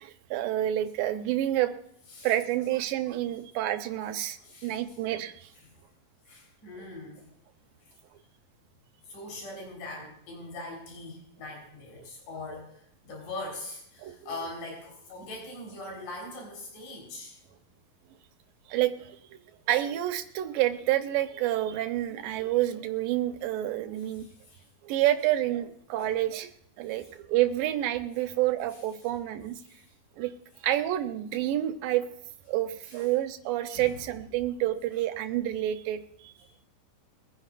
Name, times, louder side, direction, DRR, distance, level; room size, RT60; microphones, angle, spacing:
voice 1, 0.0-1.7 2.2-5.5 14.0-14.1 18.7-19.2 19.7-24.3 24.8-26.5 26.8-29.6 30.2-30.3 30.6-32.1 32.5-36.4, right 13 dB, 80° right, 8 dB, 2.5 m, -28 dB
voice 2, 4.4-5.0 5.6-5.7 6.3-7.3 9.1-17.4 24.0-24.6 27.0-27.1 28.2-28.3 29.6-29.9 32.8-33.1 33.7-34.0, left 2 dB, 65° left, -1 dB, 5.6 m, -42 dB
22.5 x 10.0 x 2.5 m, 0.71 s
omnidirectional pair, 4.1 m